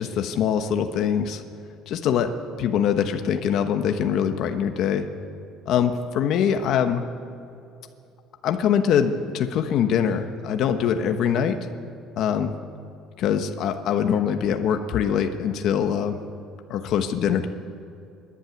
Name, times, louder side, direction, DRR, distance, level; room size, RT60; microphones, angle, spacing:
voice 1, 0.0-1.4 1.9-2.3 2.6-5.1 5.7-7.0 8.4-11.6 12.2-12.5 13.2-16.2 16.7-17.5, left 8 dB, 50° left, 6 dB, 1.1 m, -23 dB
24.5 x 11.5 x 9.4 m, 2.7 s
cardioid pair, 170°, 0 cm